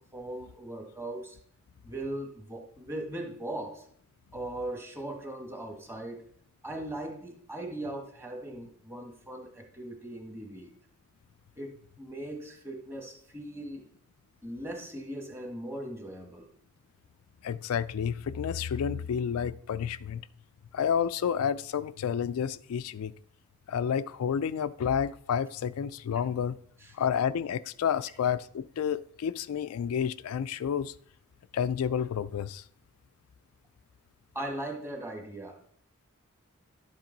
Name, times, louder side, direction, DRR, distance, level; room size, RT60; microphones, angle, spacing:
voice 1, 0.0-1.4 1.8-3.9 4.3-6.3 6.6-10.7 11.6-13.9 14.4-16.5 26.8-26.9 34.3-35.7, right 1 dB, 10° right, 1.4 m, -39 dB
voice 2, 17.4-20.2 20.7-23.1 23.7-26.6 26.9-30.9 31.5-32.6, left 8 dB, 80° left, 0.3 m, -30 dB
11.0 x 7.2 x 3.9 m
head